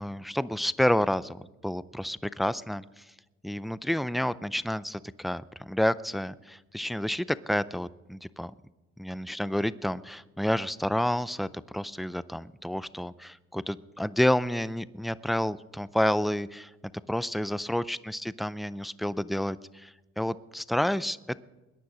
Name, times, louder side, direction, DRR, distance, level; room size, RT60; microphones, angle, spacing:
voice 1, 0.0-3.0 3.4-8.5 9.0-16.7 17.1-21.4, left 1 dB, ahead, 17 dB, 0.5 m, -29 dB
21.5 x 10.0 x 6.1 m, 1.1 s
cardioid pair, 90°, 30 cm